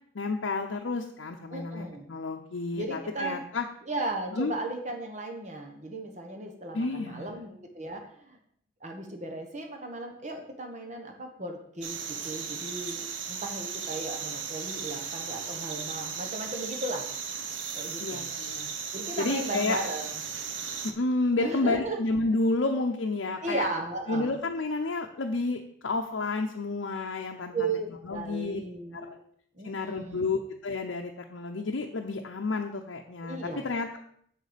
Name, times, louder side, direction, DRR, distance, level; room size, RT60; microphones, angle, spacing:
voice 1, 0.1-3.6 4.3-4.5 6.7-7.3 18.0-18.7 19.2-19.8 20.8-23.7 24.1-27.5 28.0-28.6 28.9-29.2 29.6-33.4 33.6-33.9, left 3 dB, 80° left, 2 dB, 0.7 m, -30 dB
voice 2, 1.5-2.1 2.7-3.4 3.8-8.4 8.8-17.0 17.7-18.2 18.9-20.1 21.4-22.0 23.4-24.3 27.5-29.2 29.6-30.3 33.2-33.6, right 2 dB, 40° right, 3 dB, 1.0 m, -36 dB
sound 1, 11.8-20.9, right 6 dB, 80° right, 1.0 m, -36 dB
7.5 x 6.5 x 5.1 m, 0.65 s
head